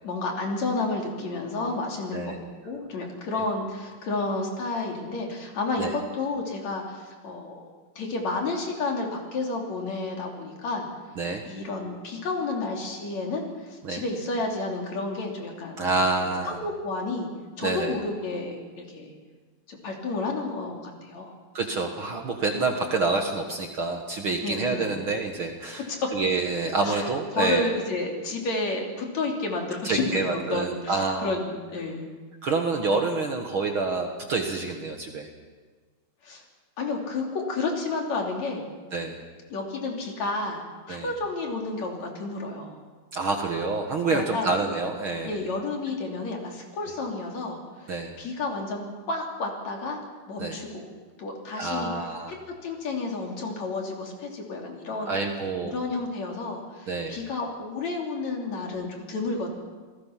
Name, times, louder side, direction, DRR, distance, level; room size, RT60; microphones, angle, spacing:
voice 1, 0.0-10.9 11.4-15.8 16.2-17.3 17.6-19.2 19.7-21.3 22.5-22.6 24.4-25.0 25.9-26.1 26.8-27.0 27.3-32.1 36.2-36.4 36.8-38.6 39.5-42.8 44.1-44.5 45.3-47.9 48.2-48.8 49.1-50.0 50.3-50.9 51.2-51.9 52.6-55.2 55.6-59.5, left 3 dB, 60° left, 1 dB, 4.1 m, -31 dB
voice 2, 15.8-16.6 17.6-18.0 21.5-25.8 26.1-27.7 29.8-31.3 32.4-35.3 38.9-39.2 40.9-41.1 43.1-45.4 47.9-48.1 50.4-50.6 51.6-52.4 55.1-55.7 56.9-57.2, right 3 dB, 50° right, 3 dB, 1.9 m, -27 dB
28.0 x 19.0 x 5.9 m, 1.4 s
omnidirectional pair, 3.7 m